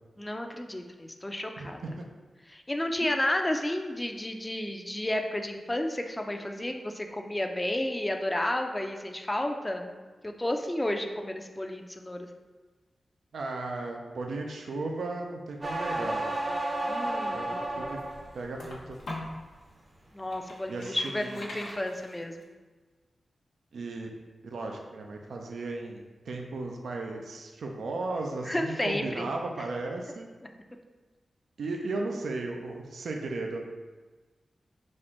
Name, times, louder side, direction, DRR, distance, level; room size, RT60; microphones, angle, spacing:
voice 1, 0.2-2.0 2.5-10.0 10.2-12.3 16.9-17.7 20.1-22.3 28.4-29.3 29.6-29.7, left 1 dB, 20° left, 4 dB, 0.5 m, -32 dB
voice 2, 1.6-1.9 13.3-16.3 17.3-18.0 18.3-19.0 20.7-21.4 23.7-24.1 24.4-30.3 31.6-33.6, right 3 dB, 85° right, 2 dB, 0.5 m, -35 dB
sound 1, 15.6-18.3 18.8-19.3, right 1 dB, 45° right, 0.7 m, -32 dB
sound 2, 17.3-19.4 19.9-22.4, left 1 dB, 90° left, 1.0 m, -42 dB
4.2 x 2.5 x 4.4 m, 1.3 s
cardioid pair, 50°, 0 cm